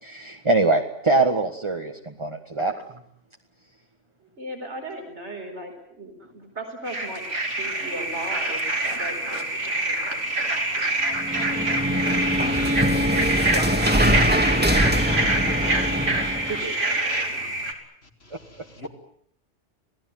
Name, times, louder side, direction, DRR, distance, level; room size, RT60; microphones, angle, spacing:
voice 1, 0.0-2.8 10.8-11.2 18.8-18.9, right 3 dB, 25° right, 3 dB, 1.6 m, -24 dB
voice 2, 4.4-11.0 11.5-11.8 12.1-15.8 16.5-17.8, right 1 dB, 70° right, 3 dB, 4.8 m, -38 dB
sound 1, 6.9-17.7, right 2 dB, 90° right, 3.6 m, -26 dB
sound 2, 11.1-16.6, equal, 10° right, 1.9 m, -23 dB
Trumpet, 11.3-17.4, right 2 dB, 40° right, 1.4 m, -36 dB
voice 3, 18.3-18.9, left 2 dB, 60° left, 4 dB, 3.6 m, -43 dB
27.5 x 18.0 x 9.5 m, 0.67 s
omnidirectional pair, 1.2 m